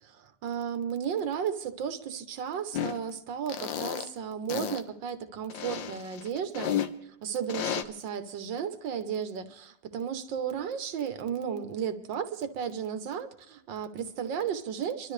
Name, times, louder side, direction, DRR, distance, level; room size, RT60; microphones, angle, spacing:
voice 1, 0.0-6.7 7.2-7.7 8.0-15.1, right 7 dB, 85° right, 1.8 m, -34 dB
sound 1, 2.7-3.0 3.5-4.1 4.5-4.8 5.5-6.9 7.5-7.8, left 9 dB, 90° left, 1.7 m, -32 dB
26.5 x 13.0 x 3.3 m
omnidirectional pair, 2.0 m